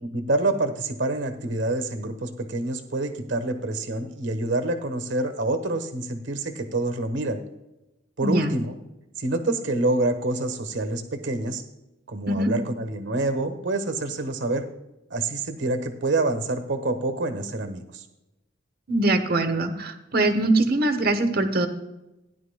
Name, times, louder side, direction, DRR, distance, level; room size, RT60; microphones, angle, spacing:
voice 1, 0.0-7.4 8.2-8.7 9.2-11.6 12.1-14.7 15.1-18.0, right 2 dB, 75° right, 8 dB, 1.3 m, -27 dB
voice 2, 8.2-8.6 12.3-12.5 18.9-21.7, right 2 dB, 50° right, 7 dB, 1.1 m, -22 dB
16.5 x 10.5 x 2.2 m, 0.97 s
head